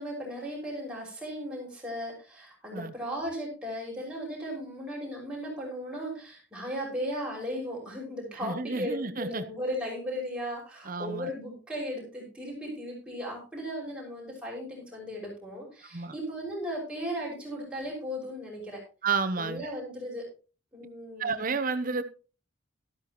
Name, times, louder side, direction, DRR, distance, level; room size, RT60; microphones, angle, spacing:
voice 1, 0.0-18.8 19.4-20.3 20.7-21.4, equal, 5° right, 5.8 m, -36 dB
voice 2, 8.4-9.4 10.9-11.3 15.9-16.1 19.0-19.7 21.2-22.0, right 4 dB, 45° right, 0.9 m, -31 dB
13.0 x 12.0 x 3.0 m
head